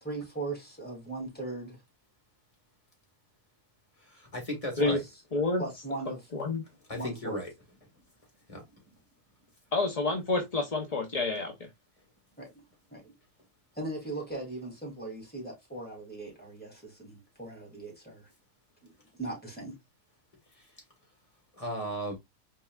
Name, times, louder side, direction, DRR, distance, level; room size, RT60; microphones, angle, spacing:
voice 1, 0.0-1.8 4.8-5.0 5.6-6.3 6.9-7.4 12.4-12.5 12.9-13.1 13.7-18.3 18.8-18.9 19.2-19.8, right 2 dB, 5° left, 2.4 m, -38 dB
voice 2, 4.1-5.0 6.9-7.5 8.5-8.6 21.6-22.1, equal, 20° left, 1.9 m, -35 dB
voice 3, 5.3-5.6 6.3-6.6 9.7-11.5, left 3 dB, 40° left, 0.6 m, -28 dB
4.4 x 4.0 x 2.3 m
omnidirectional pair, 1.6 m